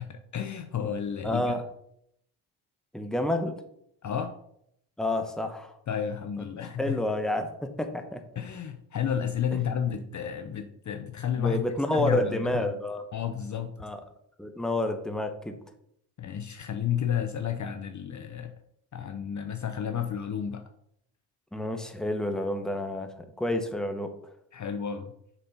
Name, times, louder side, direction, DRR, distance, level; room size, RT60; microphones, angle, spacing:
voice 1, 0.1-1.5 4.0-4.4 5.9-7.0 8.4-11.6 11.9-12.8 13.1-13.8 16.2-18.5 18.9-20.6 24.5-25.1, left 8 dB, 35° left, 8 dB, 0.7 m, -31 dB
voice 2, 1.2-1.6 2.9-3.6 5.0-5.7 6.8-8.2 9.5-9.6 11.4-13.0 13.8-14.0 14.4-15.6 21.5-24.1, left 1 dB, ahead, 6 dB, 1.0 m, -29 dB
6.8 x 4.2 x 5.6 m, 0.74 s
supercardioid pair, 75°, 49 cm